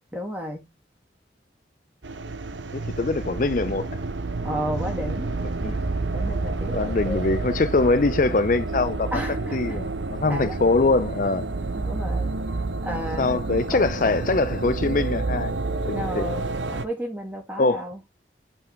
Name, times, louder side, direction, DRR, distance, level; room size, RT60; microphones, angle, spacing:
voice 1, 0.1-0.7 4.4-5.3 6.1-7.5 9.1-9.8 10.3-10.6 11.7-12.3 12.8-13.4 13.7-14.2 15.9-18.0, equal, 10° right, 2.9 m, -33 dB
sound 1, 2.0-16.9, right 3 dB, 85° right, 1.0 m, -29 dB
voice 2, 2.7-3.9 5.6-5.8 6.7-9.1 9.5-11.5 13.2-15.5 15.9-16.3 17.6-17.9, left 3 dB, 45° left, 0.6 m, -23 dB
7.7 x 4.6 x 3.4 m
head